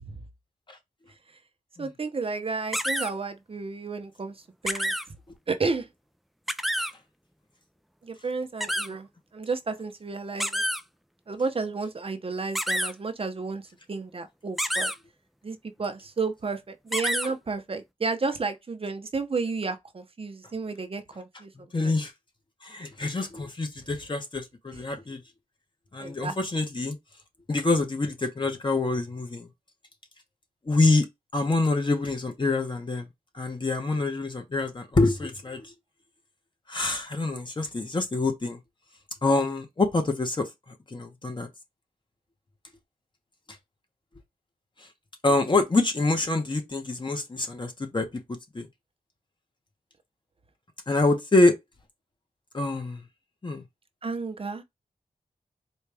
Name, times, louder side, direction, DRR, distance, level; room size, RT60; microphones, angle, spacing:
voice 1, 1.8-4.4 4.6-4.9 5.5-5.9 8.0-9.1 9.3-10.6 11.3-13.6 13.9-14.9 15.4-21.5 21.8-21.9 26.0-26.3 54.0-54.6, right 4 dB, 40° right, 0.7 m, -32 dB
sound 1, 2.7-3.1 4.7-5.0 6.5-6.9 8.6-8.9 10.4-10.8 12.5-12.9 14.6-14.9 16.9-17.3, equal, ahead, 0.3 m, -27 dB
voice 2, 21.6-22.1 22.6-25.2 25.9-27.0 27.5-29.5 30.7-31.1 31.3-33.1 33.3-35.7 36.7-38.6 39.2-40.5 40.9-41.5 45.2-48.7 50.9-51.5 52.5-53.0 53.4-53.6, left 2 dB, 35° left, 1.0 m, -26 dB
4.5 x 2.4 x 3.4 m
wide cardioid pair, 95°, 14 cm